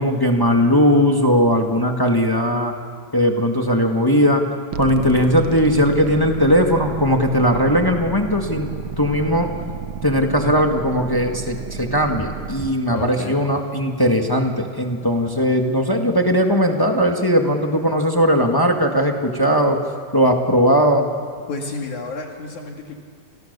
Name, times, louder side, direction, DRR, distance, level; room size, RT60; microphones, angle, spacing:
voice 1, 0.0-2.7 3.1-4.4 4.8-8.7 9.0-9.5 10.0-19.8 20.1-21.1, equal, 20° left, 3 dB, 0.6 m, -18 dB
sound 1, 4.7-12.7, right 7 dB, 70° right, 1.3 m, -31 dB
voice 2, 12.9-13.4 21.5-22.9, left 3 dB, 65° left, 2 dB, 3.4 m, -31 dB
30.0 x 26.5 x 6.8 m, 2.1 s
omnidirectional pair, 3.7 m